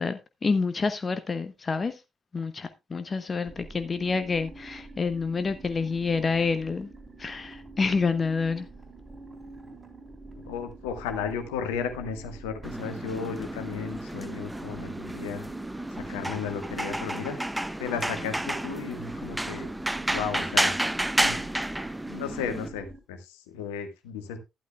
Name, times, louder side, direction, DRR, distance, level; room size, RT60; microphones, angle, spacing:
voice 1, 0.0-1.9 2.3-6.9 7.2-8.7, left 4 dB, 35° left, 1.0 m, -28 dB
sound 1, 3.4-23.0, right 3 dB, 30° right, 3.5 m, -46 dB
voice 2, 10.4-15.5 16.1-17.4 17.8-19.7 20.1-20.7 21.2-21.4 22.1-24.4, left 6 dB, 75° left, 1.6 m, -34 dB
sound 2, 12.6-22.7, right 1 dB, 10° right, 0.6 m, -31 dB
12.0 x 11.5 x 2.3 m
figure-of-eight pair, 45°, 0 cm